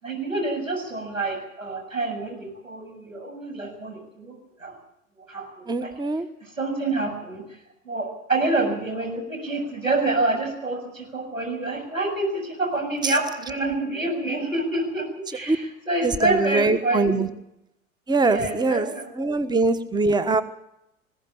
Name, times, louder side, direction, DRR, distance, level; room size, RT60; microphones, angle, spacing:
voice 1, 0.0-4.4 4.6-4.7 5.3-5.9 6.6-7.4 7.9-17.3 18.2-19.4, right 2 dB, 90° right, 1 dB, 7.3 m, -27 dB
voice 2, 5.7-6.3 13.0-13.2 15.3-15.6 16.0-17.3 18.1-18.9 19.1-20.4, right 3 dB, 10° right, 13 dB, 1.4 m, -23 dB
21.0 x 16.5 x 8.6 m, 0.81 s
figure-of-eight pair, 80°, 39 cm